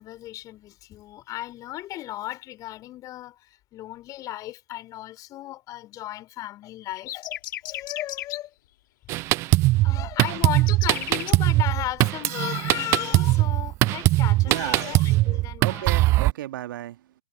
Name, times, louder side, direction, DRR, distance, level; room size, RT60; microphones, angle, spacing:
voice 1, 0.0-8.5 9.8-16.1, left 15 dB, 25° left, 3.1 m, -35 dB
sound 1, 6.9-8.4 10.5-11.3, left 14 dB, 45° left, 2.3 m, -34 dB
Drum kit, 9.1-16.3, right 19 dB, 20° right, 0.3 m, -21 dB
voice 2, 14.4-15.0 15.6-17.1, right 13 dB, 45° right, 2.0 m, -33 dB
figure-of-eight pair, 110°, 15 cm